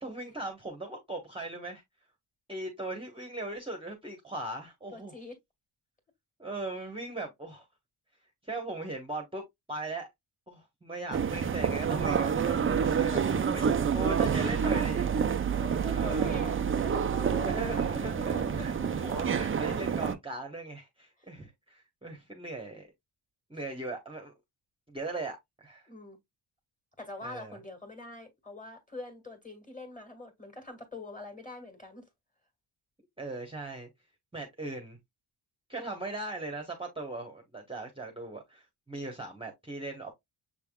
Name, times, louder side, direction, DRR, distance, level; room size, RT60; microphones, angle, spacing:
voice 1, 0.0-1.8 2.5-5.1 6.4-7.7 8.4-10.1 10.5-15.2 15.9-16.3 17.4-22.9 23.5-24.3 24.9-25.9 27.2-27.6 33.2-33.9 34.3-35.0 35.7-40.1, right 2 dB, 10° right, 1.0 m, -39 dB
voice 2, 4.9-5.4 15.5-18.9 21.2-21.3 25.9-26.2 27.0-32.1, left 2 dB, 15° left, 1.9 m, -44 dB
sound 1, 11.1-20.2, right 7 dB, 30° right, 0.4 m, -28 dB
6.8 x 3.5 x 2.3 m
wide cardioid pair, 125°, 49 cm